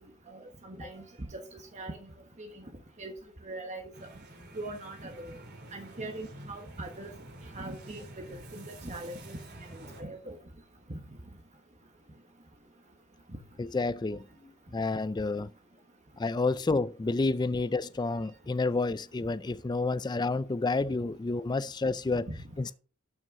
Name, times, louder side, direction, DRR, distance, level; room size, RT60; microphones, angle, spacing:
voice 1, 0.3-1.0 1.3-2.0 2.4-2.5 3.0-3.1 3.4-3.9 4.5-5.4 5.7-7.1 7.5-9.4 9.7-10.4 10.9-11.0, right 2 dB, 30° right, 1.3 m, -41 dB
sound 1, 3.9-10.0, right 1 dB, 50° right, 2.9 m, -49 dB
voice 2, 13.6-15.5 16.2-22.3 22.6-22.7, left 3 dB, 20° left, 0.3 m, -30 dB
12.0 x 6.1 x 3.7 m
head